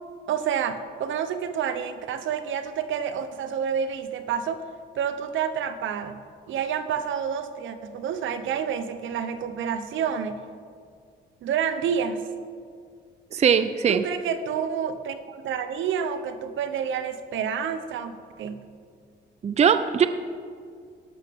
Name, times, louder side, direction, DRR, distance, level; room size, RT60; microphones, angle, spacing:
voice 1, 0.3-4.6 4.9-10.4 11.4-12.2 13.9-18.6, right 7 dB, 75° right, 10 dB, 0.8 m, -29 dB
voice 2, 13.3-14.0 19.4-20.1, right 7 dB, 35° right, 10 dB, 0.5 m, -20 dB
12.5 x 12.0 x 3.6 m, 2.2 s
cardioid pair, 90°, 20 cm